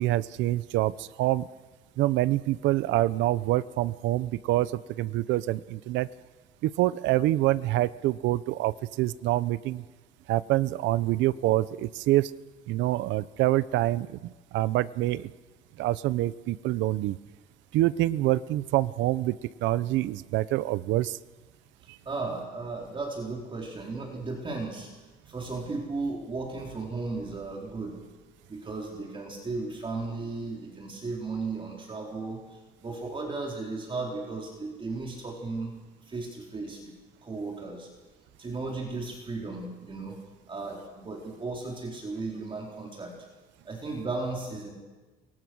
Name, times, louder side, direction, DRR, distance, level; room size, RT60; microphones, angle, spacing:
voice 1, 0.0-1.5 2.0-6.1 6.6-9.8 10.3-12.3 12.7-15.3 15.8-17.2 17.7-21.2 21.9-22.0, right 16 dB, 90° right, 17 dB, 0.8 m, -26 dB
voice 2, 22.0-24.9 25.3-28.0 28.5-35.7 36.0-36.9 37.2-37.9 38.4-40.2 40.5-43.1 43.6-44.7, right 3 dB, 30° right, -1 dB, 4.4 m, -35 dB
29.0 x 23.0 x 6.4 m, 1.2 s
cardioid pair, 125°, 18 cm